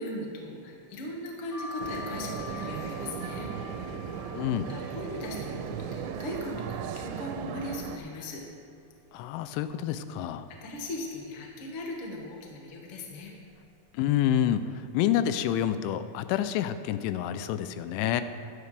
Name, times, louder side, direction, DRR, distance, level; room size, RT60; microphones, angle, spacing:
voice 1, 0.0-3.5 4.7-8.4 10.5-13.3, left 1 dB, 65° left, -1 dB, 1.4 m, -38 dB
sound 1, 1.5-7.2 7.6-8.4 8.8-8.9 9.1-10.2 10.7-11.1 11.8-12.1 12.9-13.2 13.4-13.6, left 5 dB, 45° left, 2.4 m, -46 dB
sound 2, 1.8-8.0, right 7 dB, 85° right, 2.9 m, -36 dB
voice 2, 4.4-4.8 9.1-10.5 13.9-18.2, left 10 dB, 85° left, 11 dB, 2.9 m, -28 dB
16.0 x 11.5 x 3.3 m, 2.3 s
omnidirectional pair, 5.4 m